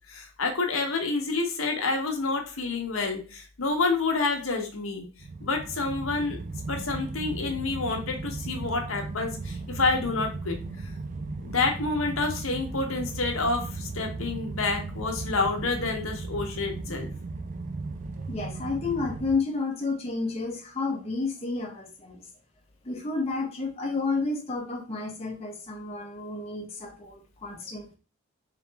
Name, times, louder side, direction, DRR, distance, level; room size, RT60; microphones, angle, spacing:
voice 1, 0.1-5.0 5.4-6.4 6.7-10.6 11.4-17.1, left 3 dB, 75° left, 3 dB, 0.9 m, -28 dB
sound 1, 5.2-19.4, right 3 dB, 35° right, 0.3 m, -36 dB
voice 2, 18.3-22.2 22.8-27.9, left 3 dB, 30° left, -1 dB, 0.7 m, -31 dB
3.7 x 3.0 x 3.3 m, 0.35 s
head